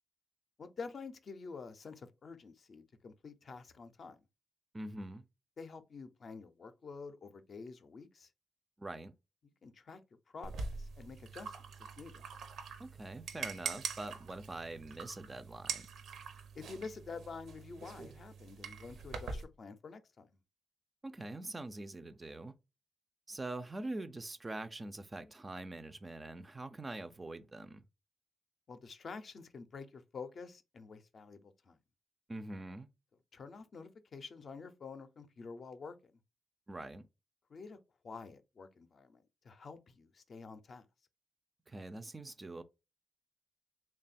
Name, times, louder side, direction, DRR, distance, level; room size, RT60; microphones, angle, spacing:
voice 1, 0.6-4.2 5.6-8.3 9.6-10.0 10.3-11.5 12.0-12.2 16.5-20.3 28.7-31.8 33.3-36.1 37.5-37.8 38.0-40.9, left 4 dB, 45° left, 0.4 m, -48 dB
voice 2, 4.7-5.2 8.8-9.1 12.8-15.9 21.0-22.5 23.3-27.8 32.3-32.9 36.7-37.1 41.7-42.6, right 2 dB, 20° right, 0.3 m, -44 dB
sound 1, 10.4-19.4, right 5 dB, 90° right, 0.7 m, -44 dB
3.4 x 2.2 x 4.0 m
wide cardioid pair, 150°, 0 cm